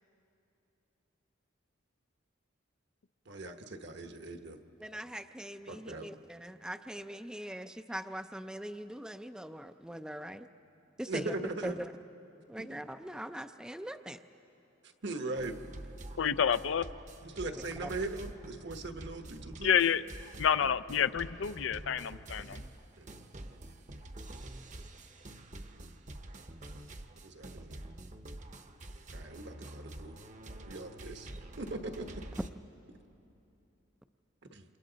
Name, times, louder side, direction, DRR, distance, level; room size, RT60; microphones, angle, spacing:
voice 1, 3.3-4.6 5.7-6.1 11.1-11.7 15.0-15.6 17.2-19.8 23.0-23.1 25.7-25.9 27.2-27.8 29.1-30.1 30.6-32.1 34.5-34.6, right 2 dB, 60° right, 6 dB, 1.1 m, -40 dB
voice 2, 4.8-10.5 11.0-11.9 12.5-14.2 17.8-18.0, right 1 dB, 5° right, 8 dB, 0.4 m, -41 dB
sound 1, 15.3-32.5, right 1 dB, 40° right, 0.9 m, -47 dB
voice 3, 16.2-16.9 19.6-20.0 20.4-22.6, left 8 dB, 75° left, 14 dB, 0.4 m, -29 dB
29.0 x 27.0 x 4.0 m, 2.8 s
head